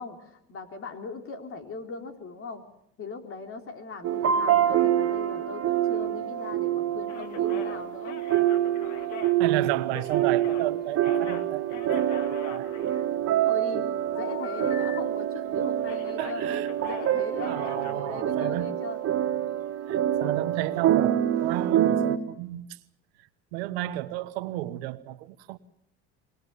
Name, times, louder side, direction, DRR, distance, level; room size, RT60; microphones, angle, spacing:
voice 1, 0.0-2.7 3.0-8.4 13.4-16.5 16.8-19.0, left 4 dB, 45° left, 3.8 m, -39 dB
sound 1, 4.0-22.2, right 11 dB, 50° right, 2.3 m, -26 dB
sound 2, 7.1-10.7 11.0-13.5 14.2-15.0 15.2-15.5 15.8-18.0, left 8 dB, 70° left, 2.2 m, -42 dB
voice 2, 9.4-12.7 16.2-16.7 17.4-18.7 19.9-22.8 23.5-25.6, right 16 dB, 90° right, 1.3 m, -32 dB
24.5 x 21.0 x 6.9 m
supercardioid pair, 90°, 30 cm